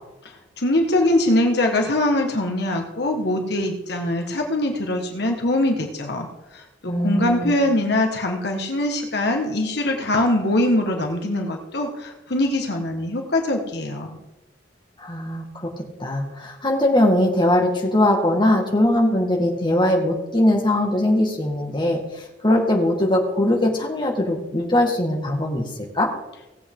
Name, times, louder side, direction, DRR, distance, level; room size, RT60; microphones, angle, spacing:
voice 1, 0.6-6.3 6.5-14.2, left 1 dB, 60° left, 3 dB, 1.7 m, -22 dB
voice 2, 6.9-7.6 15.0-25.7 25.9-26.1, left 1 dB, 25° left, 0 dB, 2.0 m, -21 dB
18.0 x 7.9 x 3.9 m, 0.98 s
head